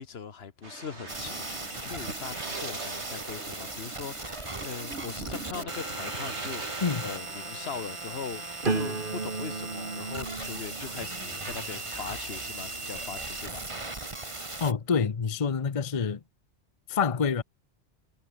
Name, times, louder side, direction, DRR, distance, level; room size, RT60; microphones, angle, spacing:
voice 1, 0.0-8.4 8.7-13.6, left 6 dB, 65° left, 1.3 m, -40 dB
sound 1, 0.6-10.5 10.8-14.6, right 3 dB, 75° right, 3.7 m, -44 dB
sound 2, 1.1-14.7, right 2 dB, 25° right, 1.9 m, -38 dB
voice 2, 6.8-7.1 14.6-16.2 16.9-17.4, left 6 dB, 35° left, 0.8 m, -27 dB
sound 3, 8.6-14.5 15.0-15.5, right 3 dB, 50° right, 2.2 m, -37 dB
omnidirectional pair, 1.2 m